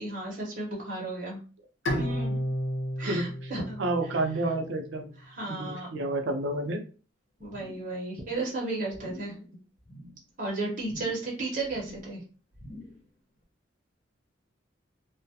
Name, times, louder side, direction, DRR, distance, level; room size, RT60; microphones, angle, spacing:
voice 1, 0.0-1.4 2.0-2.4 3.0-3.8 5.2-5.9 7.4-9.5 10.4-12.2, right 2 dB, 40° right, -3 dB, 0.8 m, -34 dB
Bowed string instrument, 1.9-5.1, equal, 75° left, 0.7 m, -33 dB
voice 2, 3.0-3.5 3.8-5.1 5.5-6.8, right 2 dB, 70° right, 5 dB, 0.5 m, -30 dB
sound 1, 7.4-7.9 8.2-8.5 8.9-9.4 9.8-10.2 10.8-11.4 11.6-12.1 12.5-13.1 13.4-13.5, left 1 dB, 35° left, 0.6 m, -47 dB
2.2 x 2.1 x 2.6 m, 0.36 s
head